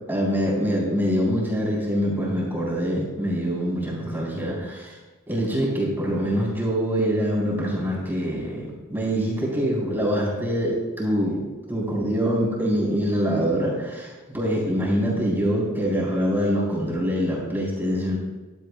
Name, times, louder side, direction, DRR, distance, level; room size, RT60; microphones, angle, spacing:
voice 1, 0.1-4.9 5.3-18.2, equal, 10° right, -5 dB, 3.9 m, -24 dB
15.5 x 12.0 x 2.3 m, 1.2 s
head